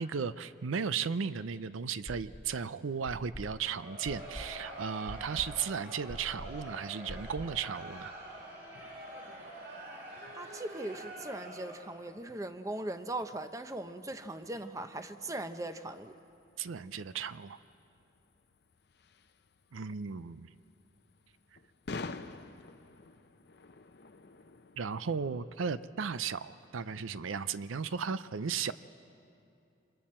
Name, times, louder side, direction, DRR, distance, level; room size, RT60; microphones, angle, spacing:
voice 1, 0.0-8.1 16.6-17.6 19.7-20.5 24.8-28.7, right 6 dB, 90° right, 14 dB, 0.5 m, -35 dB
sound 1, 2.0-2.6 3.0-7.7, equal, 30° left, 1.1 m, -46 dB
Crowd, 3.5-12.0, right 1 dB, 60° right, 6.0 m, -46 dB
sound 2, 8.7-25.2, left 3 dB, 55° left, 0.6 m, -51 dB
voice 2, 10.3-16.1, right 1 dB, 15° right, 9 dB, 0.6 m, -39 dB
28.5 x 26.5 x 4.4 m, 2.7 s
head